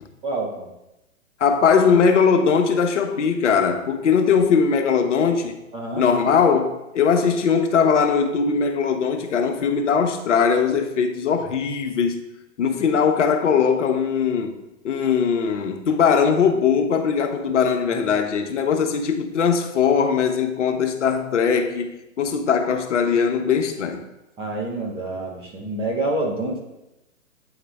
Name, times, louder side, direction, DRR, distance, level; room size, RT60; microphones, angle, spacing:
voice 1, 0.2-0.7 5.7-6.0 24.4-26.6, right 2 dB, 15° right, 0.7 m, -27 dB
voice 2, 1.4-5.6 6.0-12.2 12.6-14.5 14.8-21.9 22.2-24.0, left 6 dB, 60° left, 0.9 m, -20 dB
8.7 x 4.9 x 3.4 m
hypercardioid pair, 130°, 41 cm